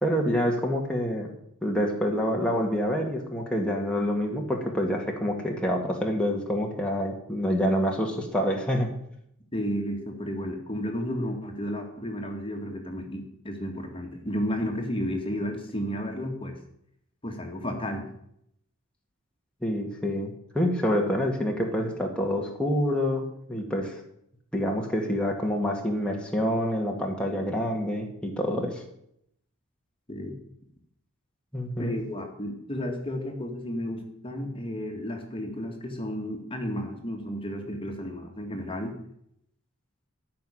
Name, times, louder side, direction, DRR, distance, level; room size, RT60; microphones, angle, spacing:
voice 1, 0.0-1.3 1.6-8.9 19.6-23.9 24.5-28.8 31.5-31.9, equal, 5° left, -1 dB, 1.9 m, -27 dB
voice 2, 9.5-16.5 17.2-18.0 30.1-30.4 31.8-39.0, equal, 25° left, 3 dB, 2.0 m, -32 dB
14.5 x 6.0 x 10.0 m, 0.74 s
head